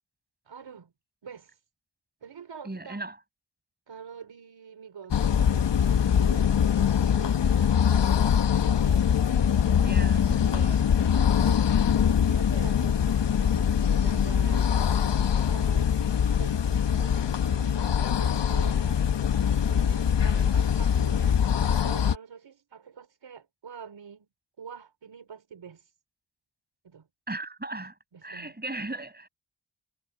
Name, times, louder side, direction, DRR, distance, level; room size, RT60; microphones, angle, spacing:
voice 1, 0.4-0.9 1.2-1.6 2.2-3.0 3.9-9.1 9.9-10.8 11.4-15.9 16.3-21.4 21.8-24.3 24.6-25.9 26.8-27.1 28.1-28.5 28.9-29.1, right 7 dB, 85° right, 4.7 m, -46 dB
voice 2, 2.6-3.2 9.8-10.9 27.3-27.9 28.2-29.3, right 2 dB, 20° right, 6.5 m, -37 dB
sound 1, 5.1-22.2, left 8 dB, 75° left, 1.1 m, -23 dB
cardioid pair, 70°, 43 cm